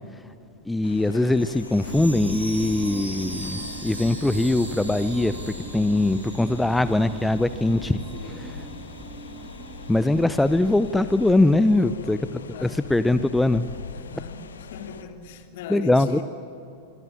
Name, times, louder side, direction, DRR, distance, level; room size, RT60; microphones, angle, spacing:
voice 1, 0.6-8.0 8.4-8.5 9.9-12.2 12.6-13.7 15.7-16.2, left 2 dB, 5° left, 0.7 m, -22 dB
sound 1, 0.8-15.0, left 5 dB, 70° left, 1.6 m, -40 dB
Chime, 1.3-7.3 7.6-7.7 8.2-8.3, right 1 dB, 90° right, 5.9 m, -40 dB
sound 2, 1.9-11.3, right 4 dB, 25° right, 2.6 m, -40 dB
voice 2, 8.1-8.7 11.7-12.9 13.9-16.2, left 7 dB, 55° left, 3.1 m, -40 dB
24.5 x 24.0 x 9.7 m
figure-of-eight pair, 90°, 0 cm